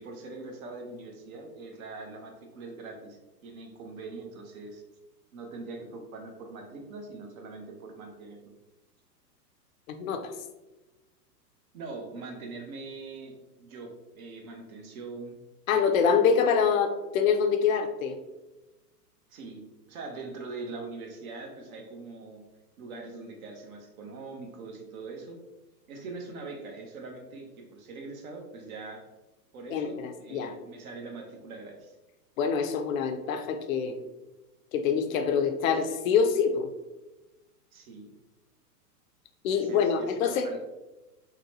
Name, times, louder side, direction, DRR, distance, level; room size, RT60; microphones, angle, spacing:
voice 1, 0.0-4.8 5.3-8.4 11.7-15.4 19.3-19.6 19.9-22.4 22.8-25.4 25.9-29.1 29.5-32.0 37.7-38.1 39.5-40.7, right 3 dB, 60° right, 2 dB, 0.9 m, -42 dB
voice 2, 9.9-10.3 15.7-18.2 29.7-30.5 32.4-34.0 34.7-36.7 39.4-40.5, left 6 dB, 60° left, 7 dB, 0.5 m, -25 dB
3.9 x 2.2 x 2.7 m, 1.0 s
hypercardioid pair, 135°, 48 cm